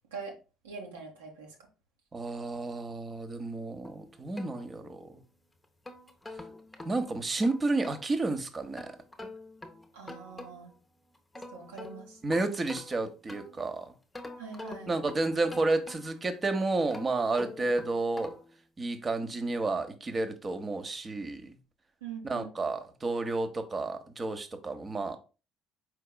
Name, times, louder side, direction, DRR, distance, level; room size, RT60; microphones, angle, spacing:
voice 1, 0.6-1.5 9.9-10.7 11.5-12.2 14.4-14.9 22.0-22.6, right 5 dB, 75° right, 1.1 m, -43 dB
voice 2, 2.1-5.1 6.8-8.9 12.2-13.9 14.9-18.4 18.8-21.6 22.2-25.2, right 2 dB, 25° right, 0.8 m, -31 dB
sound 1, 3.8-5.2 5.6-8.1 8.8-10.8 11.1-13.7 14.1-16.3 16.8-18.6, left 2 dB, 15° left, 0.8 m, -46 dB
4.6 x 4.6 x 2.2 m
figure-of-eight pair, 55°, 0 cm